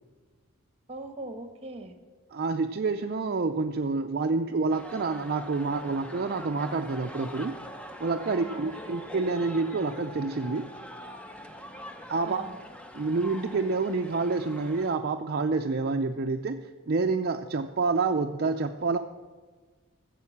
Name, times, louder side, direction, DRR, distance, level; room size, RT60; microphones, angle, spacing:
voice 1, 0.9-2.0 8.3-9.0 12.2-12.6, right 2 dB, 30° right, 8 dB, 1.1 m, -41 dB
voice 2, 2.3-7.5 8.0-10.7 12.1-12.4 12.9-19.0, right 3 dB, 50° right, 4 dB, 0.5 m, -28 dB
sound 1, 4.7-14.9, equal, 5° left, 0.7 m, -43 dB
14.5 x 7.5 x 7.1 m, 1.4 s
head